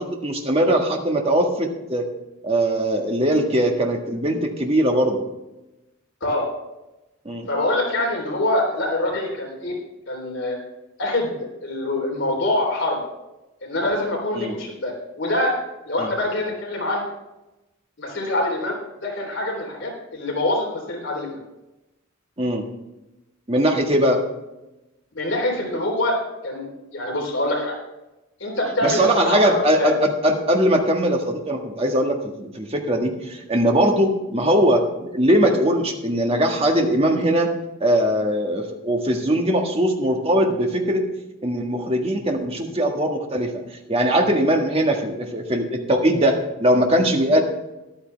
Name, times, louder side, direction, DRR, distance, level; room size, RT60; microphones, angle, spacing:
voice 1, 0.0-2.1 2.4-5.2 7.2-7.5 14.3-14.5 16.0-16.1 22.4-22.6 23.5-24.2 28.8-37.5 37.8-41.0 41.4-43.6 43.9-47.4, right 1 dB, 30° right, 2 dB, 1.6 m, -20 dB
voice 2, 7.5-9.8 10.1-10.6 11.0-13.0 13.6-15.6 15.9-17.0 18.0-18.8 19.0-21.4 25.1-27.7 28.4-29.9, left 1 dB, 65° left, -1 dB, 3.5 m, -25 dB
13.5 x 11.5 x 3.4 m, 0.99 s
head